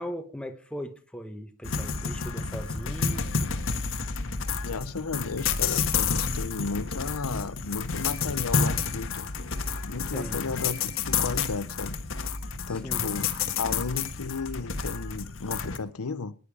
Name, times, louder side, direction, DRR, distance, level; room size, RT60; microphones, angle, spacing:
voice 1, 0.0-3.3 10.1-10.4 12.7-13.0, equal, 5° left, 1.3 m, -38 dB
sound 1, 1.6-15.8, left 5 dB, 60° left, 1.5 m, -30 dB
voice 2, 4.6-9.3 9.8-12.0 12.7-16.3, left 4 dB, 90° left, 0.8 m, -34 dB
19.5 x 11.0 x 4.9 m
head